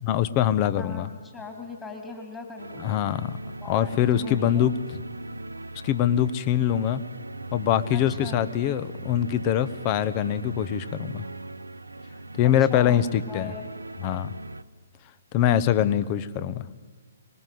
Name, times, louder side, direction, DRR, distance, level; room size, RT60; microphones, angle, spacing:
voice 1, 0.0-1.1 2.8-3.3 3.6-5.0 5.8-7.0 7.5-11.3 12.4-13.5 14.0-14.3 15.3-16.6, left 10 dB, 30° left, 15 dB, 1.1 m, -23 dB
voice 2, 0.8-3.0 3.6-4.7 7.9-8.4 12.4-13.7, left 4 dB, 15° left, 3 dB, 3.1 m, -40 dB
sound 1, 2.6-14.6, right 2 dB, 85° right, 0.8 m, -39 dB
24.5 x 21.0 x 9.4 m, 1.4 s
figure-of-eight pair, 130°, 0 cm